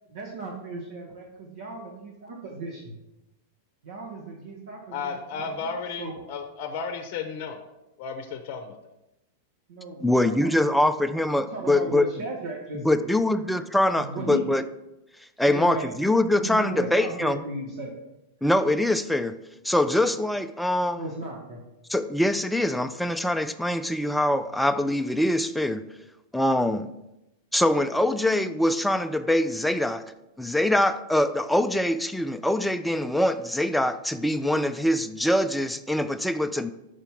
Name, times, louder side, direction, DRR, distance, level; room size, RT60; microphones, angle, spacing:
voice 1, 0.1-2.9 3.8-5.7 6.0-6.2 9.7-11.1 11.4-13.1 13.9-14.5 15.5-15.9 16.3-17.9 20.9-21.6, right 2 dB, 70° right, -2 dB, 1.1 m, -36 dB
voice 2, 4.9-7.6 8.0-8.8, left 5 dB, 50° left, 6 dB, 0.7 m, -33 dB
voice 3, 10.0-12.1 12.8-14.6 15.4-17.4 18.4-19.4 19.6-21.0 21.9-25.9 26.3-26.9 27.5-30.0 30.4-36.7, left 1 dB, 5° left, 10 dB, 0.4 m, -23 dB
5.6 x 4.9 x 4.4 m, 0.93 s
hypercardioid pair, 100°, 0 cm